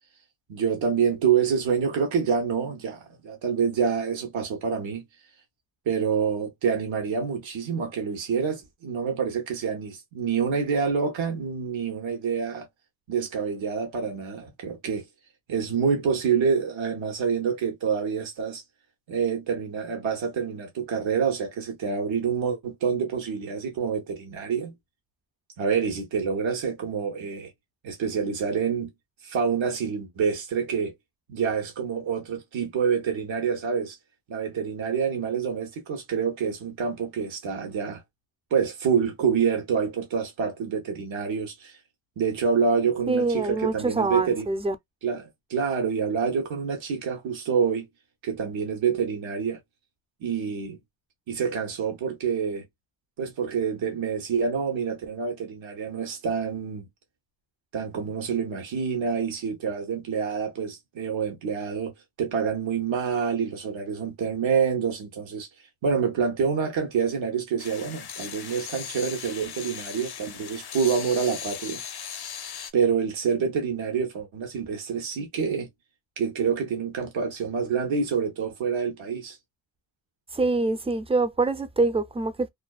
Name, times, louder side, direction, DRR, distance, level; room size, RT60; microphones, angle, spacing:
voice 1, 0.5-5.0 5.9-12.7 13.1-15.0 15.5-18.6 19.1-24.7 25.6-27.5 27.8-28.9 29.2-30.9 31.3-34.0 34.3-38.0 38.5-41.8 42.2-44.5 45.0-47.9 48.2-49.6 50.2-50.8 51.3-52.6 53.2-56.9 57.7-61.9 62.2-65.5 65.8-71.8 72.7-75.7 76.2-79.4, right 6 dB, 75° right, 0.9 m, -27 dB
voice 2, 43.1-44.7 80.3-82.5, right 3 dB, 15° right, 0.4 m, -25 dB
sound 1, 67.6-72.7, left 8 dB, 55° left, 0.6 m, -38 dB
2.5 x 2.2 x 2.3 m
cardioid pair, 45°, 46 cm